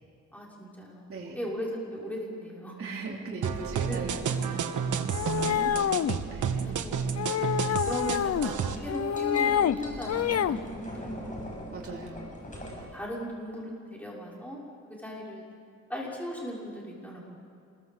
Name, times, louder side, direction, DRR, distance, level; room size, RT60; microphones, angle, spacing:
voice 1, 0.3-2.8 3.8-4.0 5.9-7.6 7.9-11.5 12.6-14.6 15.0-15.5 15.9-17.2, equal, 5° left, -4 dB, 6.0 m, -38 dB
voice 2, 2.8-5.7 6.3-6.6 11.7-12.3, right 3 dB, 50° right, -3 dB, 3.9 m, -39 dB
sound 1, 3.4-8.8, right 7 dB, 90° right, 1.5 m, -31 dB
sound 2, 5.1-6.2 7.2-8.5 8.9-9.8 10.1-10.6, left 9 dB, 55° left, 0.7 m, -27 dB
sound 3, 7.6-12.8, equal, 25° left, 6.7 m, -41 dB
27.0 x 21.5 x 7.8 m, 2.4 s
wide cardioid pair, 125°, 29 cm